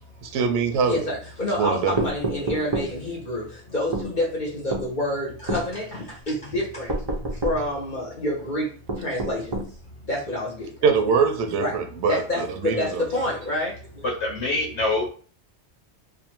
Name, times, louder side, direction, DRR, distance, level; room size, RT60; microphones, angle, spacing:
voice 1, 0.2-1.1 1.6-2.1 10.8-13.1, right 5 dB, 80° right, 0.9 m, -23 dB
voice 2, 0.9-6.9 7.4-8.7 9.0-9.6 10.1-10.7 11.6-11.7 12.1-14.0, left 1 dB, 45° left, 0.9 m, -28 dB
sound 1, 2.0-2.9 3.9-4.1 4.7-4.9 5.5-5.7 6.9-7.6 8.9-9.7, right 2 dB, 40° right, 0.4 m, -28 dB
voice 3, 14.0-15.1, left 2 dB, 75° left, 1.1 m, -25 dB
2.5 x 2.5 x 2.9 m
omnidirectional pair, 1.2 m